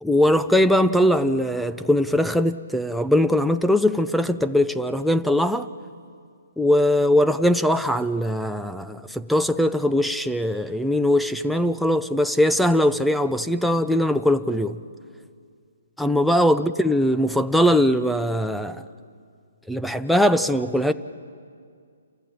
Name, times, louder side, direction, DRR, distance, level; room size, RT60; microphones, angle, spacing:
voice 1, 0.0-5.7 6.6-14.8 16.0-18.8 19.7-20.9, left 1 dB, ahead, 11 dB, 0.5 m, -21 dB
28.5 x 14.5 x 8.8 m, 2.2 s
hypercardioid pair, 150°, 0 cm